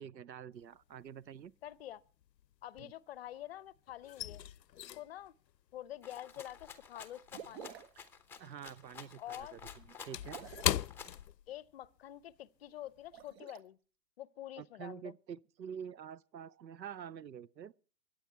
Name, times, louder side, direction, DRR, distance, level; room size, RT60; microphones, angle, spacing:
voice 1, 0.0-1.5 2.8-2.9 8.4-10.4 14.6-17.7, right 8 dB, 85° right, 0.7 m, -47 dB
sound 1, 0.6-1.2 1.4-3.4 3.7-8.4 8.7-12.0 12.3-12.5 13.0-13.2, left 11 dB, 80° left, 0.6 m, -40 dB
voice 2, 1.6-2.0 2.6-4.4 4.9-5.3 5.7-7.8 9.2-9.6 10.6-10.8 11.5-13.8 14.2-15.1, left 13 dB, 40° left, 0.7 m, -47 dB
Rattle (instrument), 6.0-11.2, left 6 dB, 5° left, 0.8 m, -52 dB
sound 2, 7.3-8.0 10.2-10.8 13.0-13.6, right 8 dB, 40° right, 1.1 m, -49 dB
23.5 x 8.9 x 4.4 m
figure-of-eight pair, 130°, 50 cm